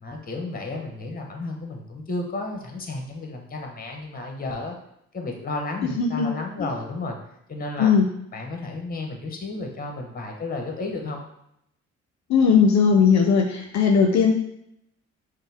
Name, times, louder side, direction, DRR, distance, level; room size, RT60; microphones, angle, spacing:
voice 1, 0.0-4.8 5.1-7.2 7.5-7.9 8.3-11.2, left 2 dB, 30° left, 2 dB, 0.9 m, -32 dB
voice 2, 5.8-6.3 6.6-6.7 7.8-8.1 12.3-14.3, left 6 dB, 65° left, 3 dB, 0.5 m, -18 dB
5.3 x 2.1 x 3.4 m, 0.77 s
cardioid pair, 90°, 30 cm